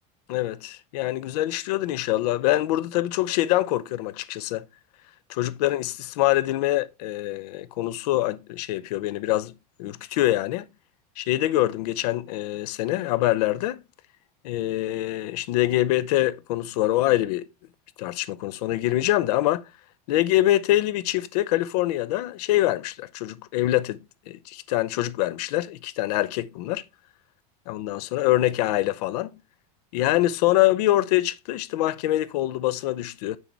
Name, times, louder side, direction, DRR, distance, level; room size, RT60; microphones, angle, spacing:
voice 1, 0.3-4.6 5.3-9.5 9.8-10.6 11.2-13.8 14.4-17.5 18.0-19.6 20.1-24.0 24.3-26.8 27.7-29.3 29.9-33.4, left 15 dB, 75° left, 0.6 m, -24 dB
7.3 x 6.4 x 3.3 m
cardioid pair, 180°, 20 cm